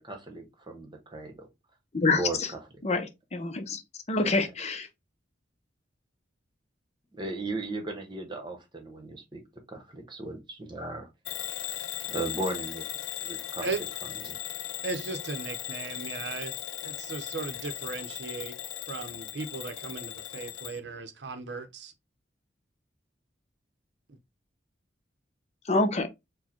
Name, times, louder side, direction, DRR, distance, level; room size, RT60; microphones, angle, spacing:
voice 1, 0.0-1.5 2.0-2.4 4.1-4.4 7.1-9.4 9.7-11.1 12.1-12.9 13.2-13.7 14.2-14.4, right 2 dB, 25° right, 1.1 m, -36 dB
voice 2, 1.9-2.5 2.8-3.8 4.1-4.9 25.7-26.1, left 3 dB, 35° left, 0.7 m, -26 dB
Bell / Alarm, 11.3-20.8, left 12 dB, 80° left, 0.5 m, -38 dB
voice 3, 14.8-16.5 16.8-18.6 18.9-21.9, right 4 dB, 65° right, 0.7 m, -36 dB
4.8 x 2.2 x 4.3 m
head